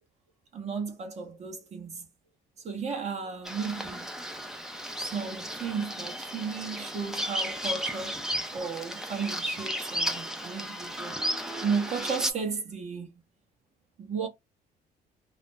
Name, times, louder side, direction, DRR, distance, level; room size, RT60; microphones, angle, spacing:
voice 1, 0.5-2.0 2.6-4.1 5.0-8.1 8.5-13.1 14.0-14.3, right 5 dB, 40° right, 0.9 m, -34 dB
Bird vocalization bird call bird song, 3.4-12.3, equal, 5° right, 0.5 m, -34 dB
2.5 x 2.0 x 3.1 m
cardioid pair, 110°, 17 cm